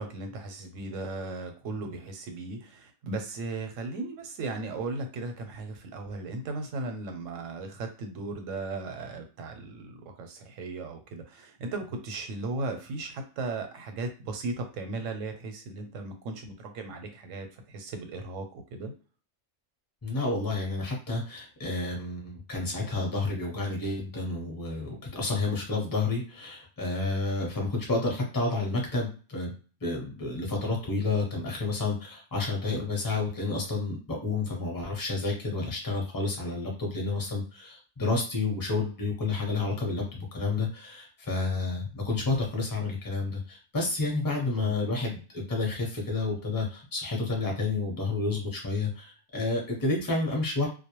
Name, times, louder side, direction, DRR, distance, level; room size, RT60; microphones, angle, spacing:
voice 1, 0.0-18.9 44.6-44.7, right 3 dB, 90° right, 6 dB, 1.0 m, -36 dB
voice 2, 20.0-29.5 29.8-50.7, left 3 dB, 20° left, 0 dB, 0.6 m, -30 dB
2.2 x 2.1 x 2.9 m, 0.37 s
omnidirectional pair, 1.3 m